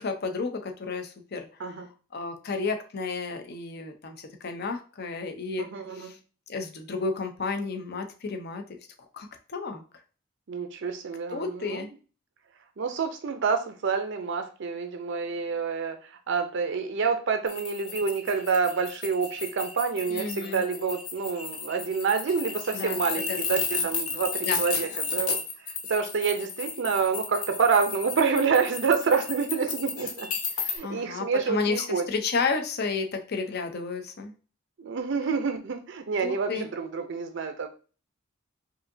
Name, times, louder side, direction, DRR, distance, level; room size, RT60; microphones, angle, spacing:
voice 1, 0.0-1.8 2.1-6.2 6.5-8.6 9.1-9.8 11.3-11.9 20.1-20.6 22.7-23.0 23.3-23.9 24.4-24.6 30.8-34.3 36.2-36.7, left 4 dB, 50° left, 6 dB, 0.6 m, -32 dB
voice 2, 5.6-6.1 10.5-11.8 12.8-30.3 30.6-32.0 34.8-37.7, right 5 dB, 55° right, 7 dB, 0.5 m, -28 dB
sound 1, 17.5-30.8, left 5 dB, 85° left, 0.8 m, -33 dB
4.9 x 2.7 x 2.6 m, 0.36 s
head